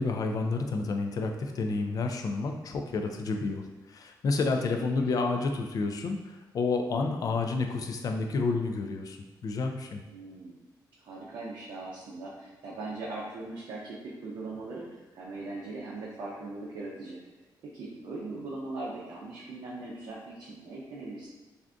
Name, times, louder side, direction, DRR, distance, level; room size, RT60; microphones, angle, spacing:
voice 1, 0.0-10.0, left 3 dB, 55° left, 4 dB, 0.3 m, -30 dB
voice 2, 10.1-10.6 11.0-17.2 17.6-21.3, right 2 dB, 75° right, -5 dB, 0.5 m, -40 dB
2.5 x 2.4 x 3.4 m, 1.2 s
cardioid pair, 120°, 8 cm